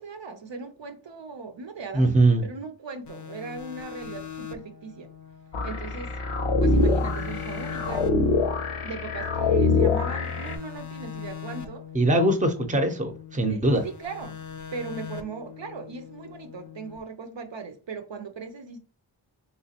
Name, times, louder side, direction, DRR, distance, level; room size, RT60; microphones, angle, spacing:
voice 1, 0.0-2.1 2.4-5.1 5.6-6.1 6.6-8.1 8.8-11.8 13.5-14.4 14.7-18.8, right 4 dB, 65° right, 0.6 m, -38 dB
voice 2, 1.9-2.4 11.9-13.8, right 2 dB, 15° right, 0.6 m, -21 dB
sound 1, 3.1-6.3 6.6-9.9 10.2-13.4 13.7-17.0, left 8 dB, 40° left, 0.5 m, -41 dB
sound 2, 5.5-10.5, left 3 dB, 90° left, 0.7 m, -24 dB
3.2 x 3.0 x 2.8 m
wide cardioid pair, 55°, 49 cm